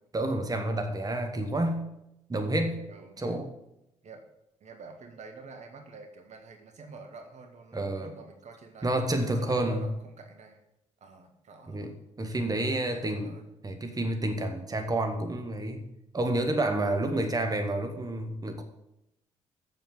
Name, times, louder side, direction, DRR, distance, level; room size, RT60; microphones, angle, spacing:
voice 1, 0.1-1.9 2.3-2.9 3.2-3.5 7.7-8.1 8.8-9.9 11.7-11.9 12.2-13.3 13.6-15.8 16.1-18.6, right 1 dB, 25° right, 5 dB, 1.6 m, -29 dB
voice 2, 2.9-3.4 4.0-4.2 4.6-8.9 9.2-10.6 11.0-13.5, right 4 dB, 50° right, 4 dB, 1.5 m, -48 dB
7.6 x 7.6 x 7.7 m, 0.85 s
figure-of-eight pair, 45°, 15 cm